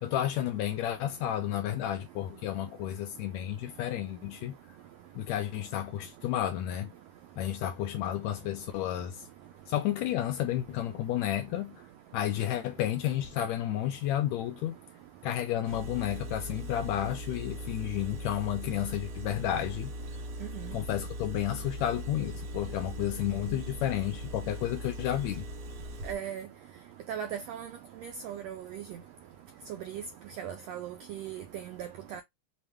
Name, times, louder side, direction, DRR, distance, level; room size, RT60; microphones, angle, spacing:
voice 1, 0.0-4.6 5.1-6.9 7.4-9.3 9.7-11.8 12.1-14.8 15.2-19.9 20.7-25.5, left 11 dB, 80° left, 1.7 m, -31 dB
Engine, 15.6-26.1, equal, 65° right, 2.0 m, -40 dB
voice 2, 26.0-26.5 27.1-27.7 28.0-28.9 29.8-30.0 30.4-32.2, right 9 dB, 85° right, 1.4 m, -38 dB
5.5 x 2.1 x 3.3 m
omnidirectional pair, 3.4 m